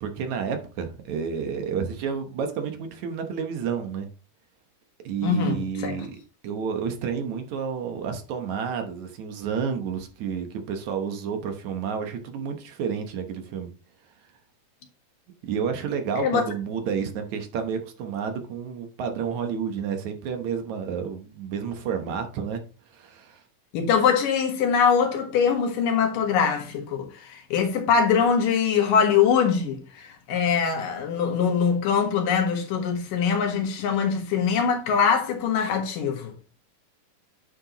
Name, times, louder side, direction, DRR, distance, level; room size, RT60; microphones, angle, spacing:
voice 1, 0.0-4.1 5.0-6.2 6.4-13.7 15.4-22.6 22.9-23.4, right 6 dB, 70° right, 2.2 m, -30 dB
voice 2, 5.2-5.6 5.8-6.0 16.2-16.4 23.7-36.3, left 6 dB, 85° left, 3.2 m, -23 dB
9.7 x 6.6 x 3.0 m
omnidirectional pair, 3.8 m